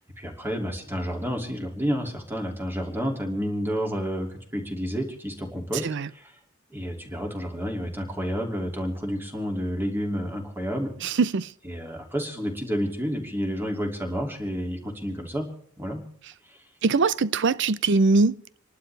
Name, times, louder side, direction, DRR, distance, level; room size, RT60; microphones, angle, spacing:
voice 1, 0.2-5.9 6.1-6.3 6.7-10.9 11.6-15.5 15.8-16.0 16.5-16.6, equal, 10° right, 2.6 m, -30 dB
voice 2, 11.0-11.5 16.8-18.4, right 4 dB, 60° right, 0.6 m, -22 dB
27.5 x 12.0 x 3.4 m
head